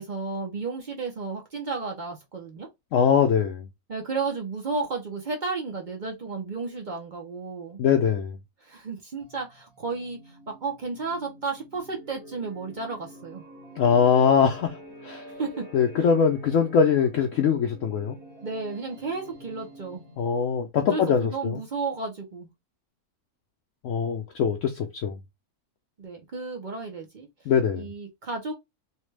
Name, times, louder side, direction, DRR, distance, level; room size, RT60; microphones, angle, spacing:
voice 1, 0.0-2.7 3.9-7.8 8.6-13.5 15.3-15.7 16.0-16.1 18.4-20.0 20.8-22.5 26.0-27.3 27.7-28.5, right 4 dB, 50° right, 0.5 m, -33 dB
voice 2, 2.9-3.7 7.8-8.4 13.8-14.8 15.0-15.2 15.7-18.2 20.2-21.6 23.8-25.2 27.5-27.9, left 7 dB, 70° left, 0.8 m, -22 dB
sound 1, 9.2-20.6, right 1 dB, 80° right, 1.6 m, -47 dB
3.3 x 2.2 x 3.2 m
omnidirectional pair, 1.6 m